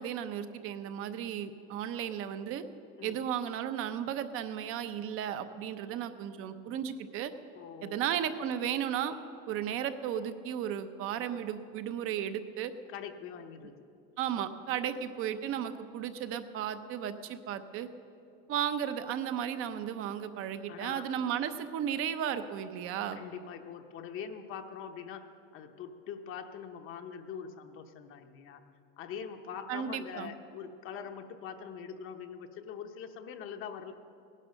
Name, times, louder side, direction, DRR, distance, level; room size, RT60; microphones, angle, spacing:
voice 1, 0.0-2.6 3.0-7.3 7.8-9.1 9.5-12.7 14.2-17.9 18.5-23.2 29.7-30.3, right 9 dB, 45° right, 11 dB, 0.8 m, -34 dB
voice 2, 7.5-8.2 12.9-13.9 20.7-21.1 23.2-28.6 29.0-33.9, left 7 dB, 40° left, 5 dB, 0.9 m, -43 dB
18.0 x 11.0 x 6.5 m, 2.7 s
supercardioid pair, 150°, 31 cm